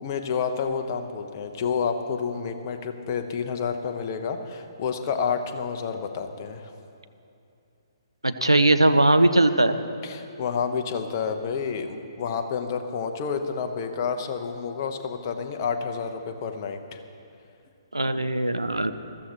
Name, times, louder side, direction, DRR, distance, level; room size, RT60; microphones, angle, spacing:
voice 1, 0.0-6.7 10.0-17.0, left 6 dB, 35° left, 6 dB, 0.9 m, -29 dB
voice 2, 8.2-9.8 17.9-18.9, right 2 dB, 85° right, 9 dB, 0.6 m, -20 dB
20.5 x 14.0 x 3.0 m, 2.6 s
figure-of-eight pair, 130°, 3 cm